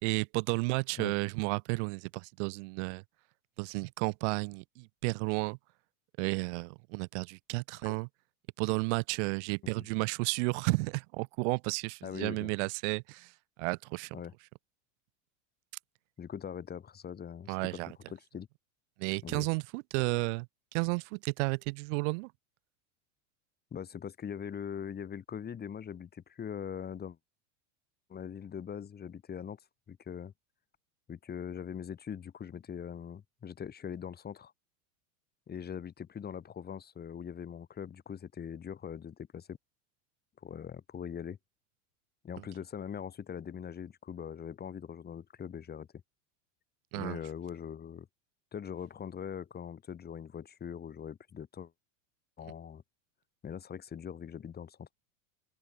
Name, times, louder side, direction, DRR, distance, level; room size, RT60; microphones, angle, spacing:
voice 1, 0.0-3.0 3.6-5.6 6.2-8.1 8.6-13.3 13.6-14.2 17.5-17.9 19.0-20.5 20.7-22.3 46.9-47.2, right 30 dB, 60° right, 3.7 m, -32 dB
voice 2, 12.0-12.5 14.1-14.3 16.2-18.5 19.2-19.5 23.7-27.2 28.1-29.6 29.9-30.3 31.1-34.5 35.5-39.6 40.4-41.4 42.2-45.9 47.0-48.1 48.5-51.7 52.4-52.8 53.4-54.9, left 8 dB, 25° left, 5.7 m, -42 dB
open air
supercardioid pair, 130°, 39 cm